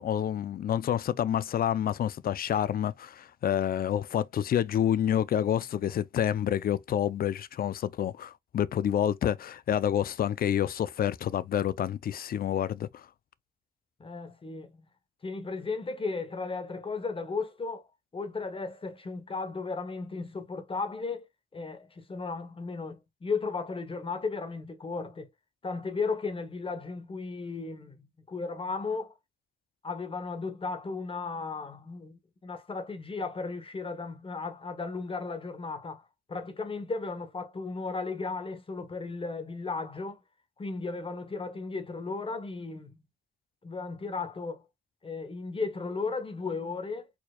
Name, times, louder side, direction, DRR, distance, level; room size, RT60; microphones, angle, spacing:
voice 1, 0.0-13.1, left 10 dB, 50° left, 0.5 m, -28 dB
voice 2, 14.0-14.8 15.2-17.9 18.1-25.3 25.6-29.1 29.8-40.2 40.6-43.0 43.6-44.6 45.0-47.1, left 4 dB, 25° left, 1.1 m, -35 dB
4.4 x 4.3 x 2.3 m
cardioid pair, 90°, 20 cm